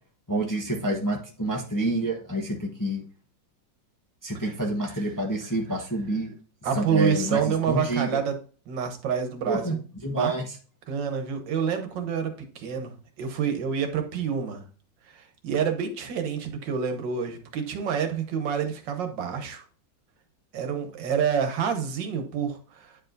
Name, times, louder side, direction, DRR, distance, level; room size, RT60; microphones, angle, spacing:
voice 1, 0.3-3.0 4.2-6.3 6.7-7.4 7.7-8.1 9.4-9.8 10.0-10.5, right 1 dB, 15° left, 0 dB, 0.7 m, -28 dB
voice 2, 6.6-8.3 8.7-9.8 10.1-10.3 10.9-14.6 15.1-19.6 20.5-23.0, right 7 dB, 85° right, 6 dB, 1.7 m, -28 dB
9.4 x 4.7 x 2.6 m, 0.40 s
omnidirectional pair, 1.9 m